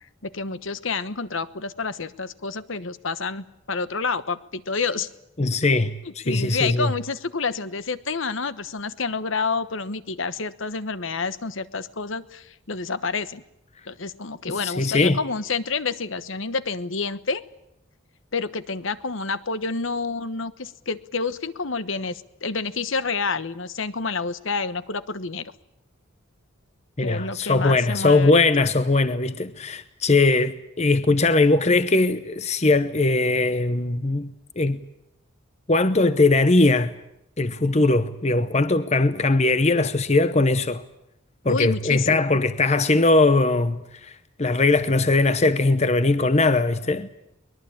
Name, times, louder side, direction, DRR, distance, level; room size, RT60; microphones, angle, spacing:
voice 1, 0.2-5.1 6.0-13.4 13.9-17.4 18.3-25.5 27.0-28.7 41.5-42.4, left 4 dB, 65° left, 1.1 m, -29 dB
voice 2, 5.4-6.9 14.5-15.2 27.0-34.3 34.6-34.8 35.7-36.9 37.4-40.8 41.4-47.1, left 2 dB, 30° left, 0.8 m, -20 dB
23.5 x 21.0 x 8.8 m
head